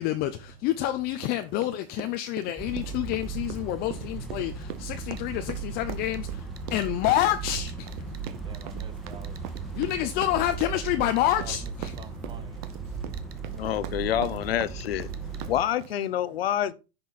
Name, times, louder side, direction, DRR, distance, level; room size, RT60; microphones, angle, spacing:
voice 1, 0.0-7.9 9.7-11.9, left 13 dB, 30° left, 0.6 m, -28 dB
sound 1, 1.2-16.1, right 11 dB, 55° right, 1.2 m, -42 dB
sound 2, 2.6-15.6, right 5 dB, ahead, 1.5 m, -37 dB
sound 3, 5.2-5.3 6.1-6.2 6.6-7.2 7.7-8.3 8.5-8.9 9.2-9.6 9.9-10.0 10.6-11.7 12.0-12.1 12.6-12.7 13.1-13.4 14.8-14.9 15.1-15.5, right 10 dB, 85° right, 1.3 m, -50 dB
voice 2, 8.1-9.8 11.0-11.1 11.4-11.7 12.0-13.7, right 6 dB, 15° right, 1.1 m, -49 dB
voice 3, 13.6-15.1 15.4-16.7, left 11 dB, 85° left, 0.9 m, -27 dB
10.5 x 6.2 x 4.2 m
supercardioid pair, 140°, 29 cm